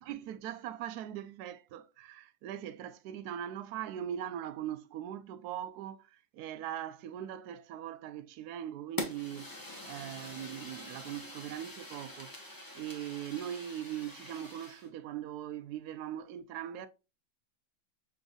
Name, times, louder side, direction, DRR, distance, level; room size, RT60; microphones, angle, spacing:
voice 1, 0.0-9.6 9.8-12.4 12.7-16.9, right 11 dB, 75° right, 0.9 m, -40 dB
Fire, 9.0-14.9, left 1 dB, 25° left, 0.4 m, -44 dB
6.0 x 3.8 x 2.3 m
omnidirectional pair, 2.1 m